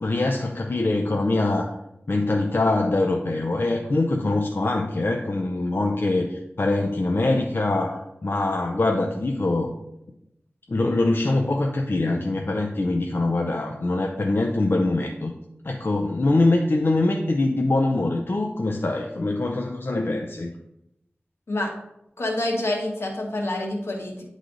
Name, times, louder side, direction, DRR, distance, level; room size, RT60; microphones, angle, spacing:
voice 1, 0.0-1.7 2.1-9.7 10.7-15.3 15.6-20.5, left 2 dB, 60° left, 2 dB, 0.6 m, -23 dB
voice 2, 22.2-24.2, left 1 dB, 75° left, 1 dB, 1.3 m, -27 dB
9.8 x 3.3 x 3.8 m, 0.84 s
wide cardioid pair, 60°, 4 cm